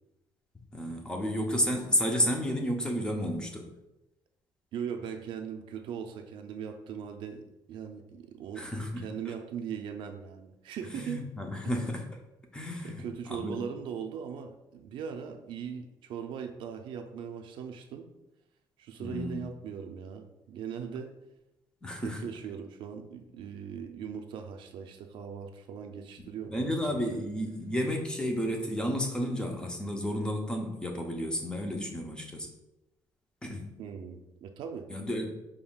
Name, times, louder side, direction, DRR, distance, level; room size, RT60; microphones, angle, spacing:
voice 1, 0.7-3.7 8.6-9.3 10.9-12.0 12.5-13.0 13.3-13.6 19.0-19.4 21.8-22.2 26.5-32.5 33.4-33.7 34.9-35.3, equal, 10° left, 2 dB, 0.5 m, -32 dB
voice 2, 4.7-8.7 9.0-11.3 12.8-18.1 18.8-21.1 22.0-27.0 33.8-34.9, right 7 dB, 65° right, 6 dB, 0.4 m, -39 dB
4.9 x 3.5 x 2.3 m, 0.94 s
cardioid pair, 155°, 9 cm